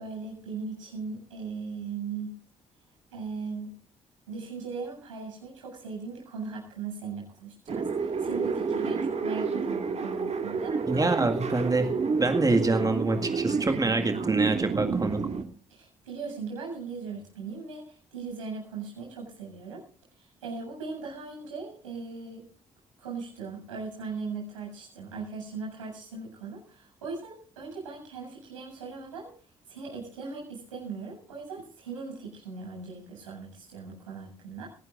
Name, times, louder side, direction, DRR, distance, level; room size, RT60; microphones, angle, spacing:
voice 1, 0.0-2.3 3.1-3.7 4.3-10.8 15.7-19.8 20.1-22.5 23.0-29.3 29.7-34.7, right 4 dB, 85° right, -2 dB, 7.7 m, -39 dB
sound 1, 7.7-15.4, right 5 dB, 40° right, 2.1 m, -29 dB
voice 2, 10.9-11.9 12.2-15.2, right 3 dB, 20° right, 5 dB, 2.0 m, -25 dB
24.0 x 18.0 x 2.6 m, 0.41 s
hypercardioid pair, 45°, 16 cm